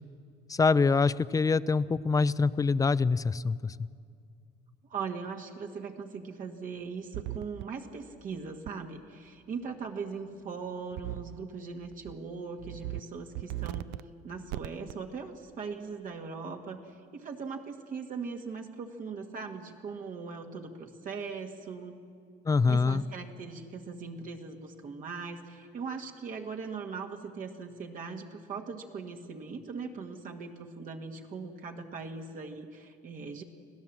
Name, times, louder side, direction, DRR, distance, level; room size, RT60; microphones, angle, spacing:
voice 1, 0.5-3.9 22.5-23.0, left 4 dB, 20° left, 17 dB, 0.5 m, -25 dB
voice 2, 4.9-13.9 14.2-22.0 22.7-33.4, right 5 dB, 50° right, 3 dB, 1.6 m, -40 dB
sound 1, 7.1-7.6 8.7-8.8 11.0-11.4 11.8-12.1 12.6-13.0 13.3-14.0 14.5-14.9, right 17 dB, 90° right, 0.5 m, -37 dB
26.0 x 16.0 x 7.3 m, 2.2 s
cardioid pair, 110°, 17 cm